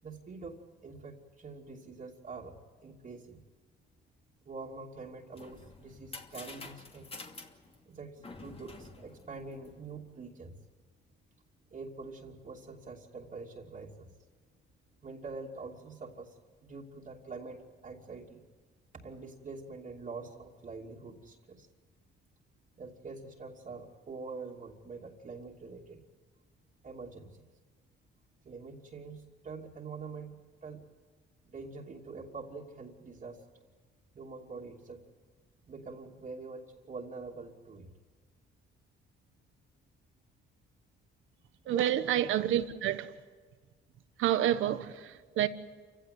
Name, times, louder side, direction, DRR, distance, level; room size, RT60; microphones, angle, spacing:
voice 1, 0.0-2.5 2.8-3.4 4.4-7.1 7.8-10.6 11.7-14.1 15.0-18.4 18.9-21.7 22.8-26.0 26.8-27.5 28.4-30.9 31.5-33.6 34.1-35.0 35.7-37.9 41.6-41.9, right 4 dB, 40° right, 2.8 m, -45 dB
sound 1, 5.1-10.1, left 3 dB, 30° left, 2.5 m, -49 dB
voice 2, 41.7-43.2 44.2-45.5, right 11 dB, 85° right, 1.4 m, -29 dB
28.5 x 16.5 x 9.4 m
cardioid pair, 90°, 20 cm